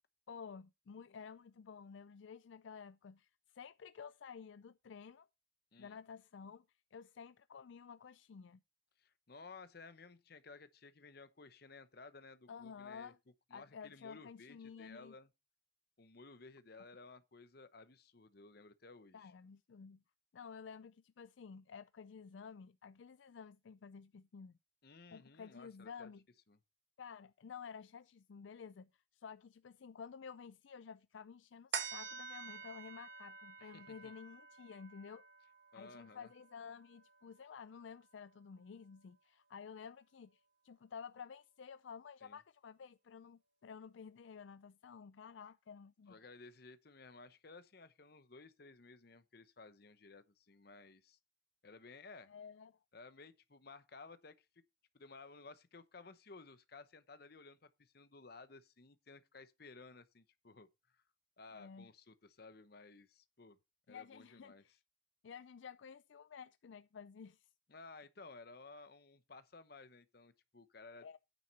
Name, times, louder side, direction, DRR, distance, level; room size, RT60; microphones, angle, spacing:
voice 1, 0.3-5.3 5.8-6.7 6.9-8.6 12.5-13.2 13.5-15.2 19.1-20.0 20.3-24.6 25.1-26.2 27.0-35.2 35.7-46.2 52.3-52.7 61.5-61.9 63.9-64.7 65.2-67.5 71.0-71.2, left 6 dB, 75° left, 0.4 m, -52 dB
voice 2, 9.0-13.1 13.5-15.3 16.0-19.3 24.8-26.1 26.5-26.6 33.6-34.1 35.7-36.3 42.2-42.4 46.1-51.2 51.6-52.3 52.9-54.5 54.9-61.0 61.4-63.6 63.9-64.8 67.7-71.1, left 3 dB, 50° left, 0.9 m, -56 dB
sound 1, 31.7-38.5 38.9-39.0, right 6 dB, 60° right, 1.7 m, -48 dB
9.4 x 7.6 x 4.1 m
head